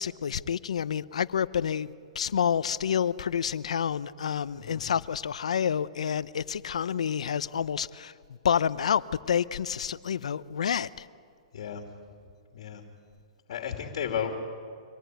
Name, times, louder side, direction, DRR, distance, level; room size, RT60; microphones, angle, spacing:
voice 1, 0.0-1.9 2.1-8.1 8.4-11.1, left 8 dB, 80° left, 16 dB, 0.8 m, -28 dB
voice 2, 4.6-4.9 11.5-11.9 12.5-12.8 13.5-14.4, left 8 dB, 60° left, 4 dB, 2.8 m, -33 dB
25.5 x 19.5 x 9.4 m, 2.3 s
hypercardioid pair, 145°, 3 cm